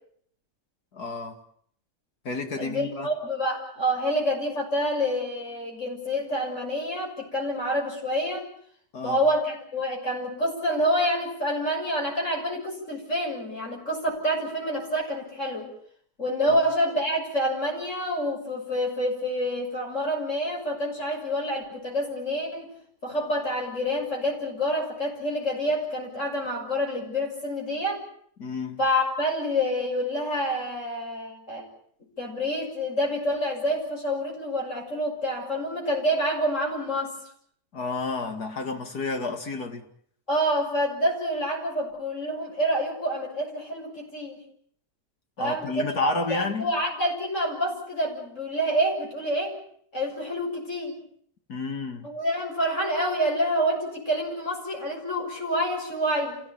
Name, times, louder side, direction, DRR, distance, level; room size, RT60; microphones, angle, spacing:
voice 1, 0.9-1.4 2.2-3.1 8.9-9.2 16.5-16.6 28.4-28.8 37.7-39.9 45.4-46.7 51.5-52.1, left 4 dB, 80° left, 2.9 m, -30 dB
voice 2, 2.6-8.5 9.0-15.7 16.2-22.7 23.0-28.0 28.8-31.7 32.2-37.2 40.3-44.4 45.4-49.6 49.9-51.0 52.0-56.4, equal, 50° left, 7.1 m, -27 dB
28.0 x 16.5 x 8.8 m
omnidirectional pair, 1.6 m